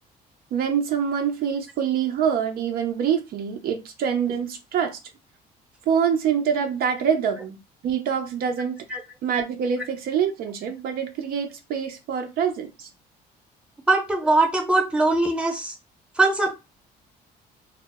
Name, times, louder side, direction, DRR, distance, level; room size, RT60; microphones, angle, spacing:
voice 1, 0.5-5.0 5.9-8.8 9.2-12.9, right 7 dB, 65° right, 0.4 m, -25 dB
voice 2, 13.9-15.8 16.2-16.6, right 2 dB, 5° right, 0.7 m, -21 dB
2.0 x 2.0 x 3.3 m
cardioid pair, 110°, 17 cm